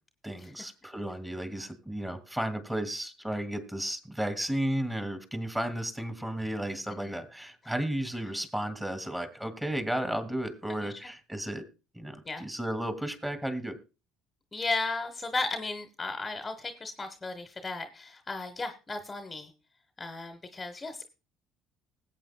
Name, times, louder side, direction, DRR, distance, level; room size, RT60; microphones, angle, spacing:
voice 1, 0.2-11.6 11.9-13.8, right 1 dB, 10° right, 9 dB, 2.6 m, -33 dB
voice 2, 10.7-11.1 12.2-12.4 14.5-19.5 20.0-21.1, left 3 dB, 20° left, 7 dB, 1.2 m, -35 dB
20.0 x 8.4 x 2.2 m, 0.30 s
hypercardioid pair, 60°, 0 cm